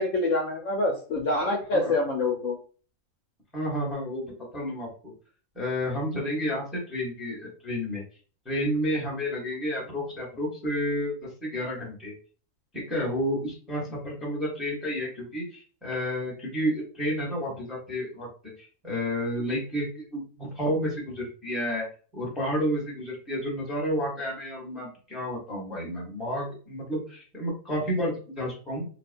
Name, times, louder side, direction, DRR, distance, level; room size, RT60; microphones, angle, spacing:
voice 1, 0.0-2.6, left 2 dB, 65° left, 1 dB, 0.9 m, -26 dB
voice 2, 3.5-5.1 5.5-8.0 8.4-12.1 12.7-21.9 22.1-28.9, equal, ahead, -3 dB, 0.8 m, -31 dB
2.8 x 2.1 x 2.5 m, 0.39 s
omnidirectional pair, 1.6 m